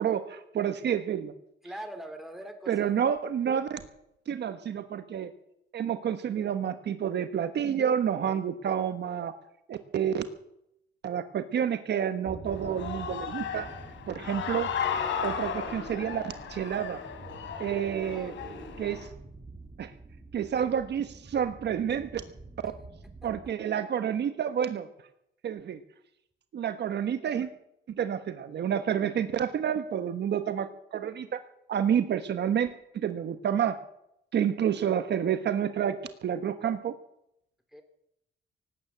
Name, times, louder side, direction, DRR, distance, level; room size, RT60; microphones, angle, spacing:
voice 1, 0.0-1.3 2.7-3.8 4.3-5.3 5.7-9.3 9.7-10.2 11.0-13.7 14.1-14.7 15.2-17.0 17.6-18.3 18.8-19.1 19.8-19.9 20.3-22.2 22.6-22.7 23.2-24.9 25.4-25.8 26.5-27.5 28.0-31.4 31.7-32.7 32.9-33.8 34.3-36.9, right 8 dB, 60° right, 9 dB, 1.3 m, -29 dB
voice 2, 1.6-3.0 18.1-18.3 18.6-18.8 37.7-37.8, right 1 dB, ahead, 6 dB, 3.1 m, -42 dB
sound 1, 12.3-23.5, right 3 dB, 20° right, 2.1 m, -47 dB
Human voice / Cheering, 12.5-19.1, left 7 dB, 75° left, 3.0 m, -35 dB
18.0 x 9.2 x 8.6 m, 0.79 s
cardioid pair, 90°, 20 cm